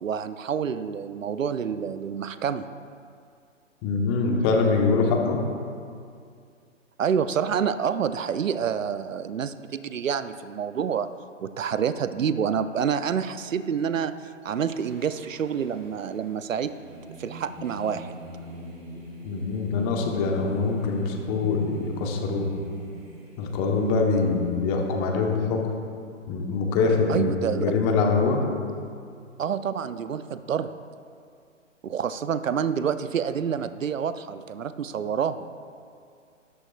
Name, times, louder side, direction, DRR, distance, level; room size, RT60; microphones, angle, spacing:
voice 1, 0.0-2.6 7.0-11.1 11.4-14.1 14.4-16.7 17.2-18.2 27.1-27.7 29.4-30.7 31.8-35.5, right 7 dB, 80° right, 12 dB, 0.6 m, -28 dB
voice 2, 3.8-5.4 19.2-22.5 23.4-25.6 26.3-28.4, left 4 dB, 25° left, 2 dB, 1.2 m, -24 dB
Singing, 14.5-24.9, right 1 dB, 15° right, 2.3 m, -43 dB
13.0 x 11.5 x 2.5 m, 2.3 s
figure-of-eight pair, 130°, 39 cm